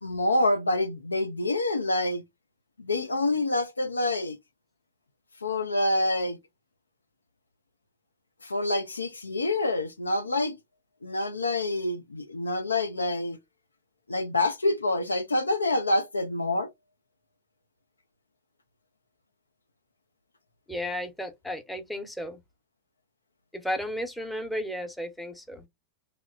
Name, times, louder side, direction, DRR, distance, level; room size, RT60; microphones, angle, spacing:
voice 1, 0.0-2.2 2.8-4.4 5.4-6.4 8.4-10.6 11.0-13.4 14.1-16.7, left 2 dB, 80° left, 0.4 m, -27 dB
voice 2, 20.7-22.4 23.5-25.7, equal, 5° left, 0.7 m, -34 dB
2.9 x 2.0 x 2.4 m
figure-of-eight pair, 90°, 0 cm